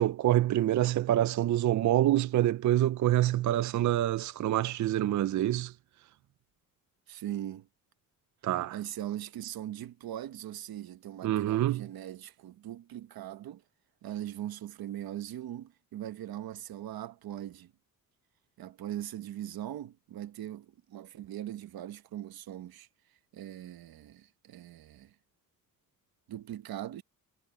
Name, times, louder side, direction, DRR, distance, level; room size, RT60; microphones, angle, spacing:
voice 1, 0.0-5.7 8.4-8.8 11.2-11.8, right 13 dB, 55° right, 0.5 m, -26 dB
voice 2, 7.1-7.7 8.7-13.6 14.0-17.7 18.6-22.9 23.3-25.1 26.3-27.0, right 12 dB, 85° right, 1.1 m, -40 dB
wide cardioid pair, 170°, 35 cm